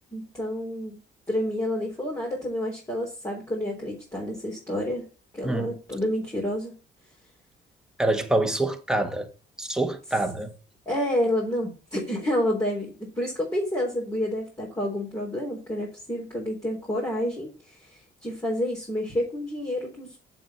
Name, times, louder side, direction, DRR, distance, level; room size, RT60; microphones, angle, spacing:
voice 1, 0.1-0.9 1.3-5.1 5.3-6.7 10.9-20.2, left 1 dB, 15° left, 3.8 m, -29 dB
voice 2, 8.0-9.3 9.6-10.5, right 2 dB, 5° right, 1.6 m, -25 dB
7.6 x 6.7 x 4.4 m
cardioid pair, 90°, 20 cm